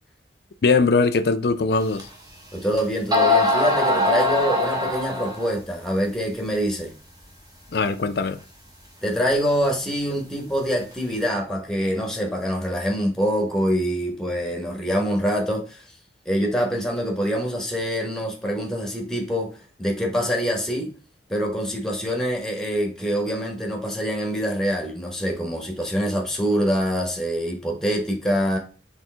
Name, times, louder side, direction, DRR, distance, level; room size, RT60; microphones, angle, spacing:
voice 1, 0.6-2.1 7.7-8.4, left 4 dB, 65° left, 0.5 m, -20 dB
sound 1, 2.0-2.1 2.8-2.9 3.1-5.6, left 2 dB, 20° right, 1.0 m, -21 dB
voice 2, 2.5-6.9 9.0-15.8 16.2-19.5 19.8-20.9 21.3-28.6, equal, 5° left, 1.1 m, -25 dB
4.5 x 3.3 x 3.3 m
head